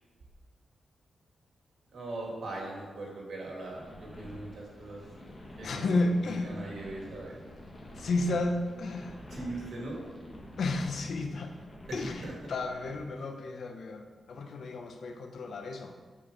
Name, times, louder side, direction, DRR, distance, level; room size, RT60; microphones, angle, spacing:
voice 1, 1.9-5.0 5.6-7.4 9.3-10.0 11.9-12.3, right 2 dB, 70° right, -2 dB, 2.0 m, -40 dB
sound 1, 3.6-13.0, equal, 30° left, 1.4 m, -48 dB
voice 2, 5.6-6.5 8.0-9.2 10.6-11.5 11.9-15.9, left 2 dB, 65° left, 4 dB, 0.7 m, -32 dB
7.4 x 4.4 x 4.9 m, 1.4 s
wide cardioid pair, 155°, 0 cm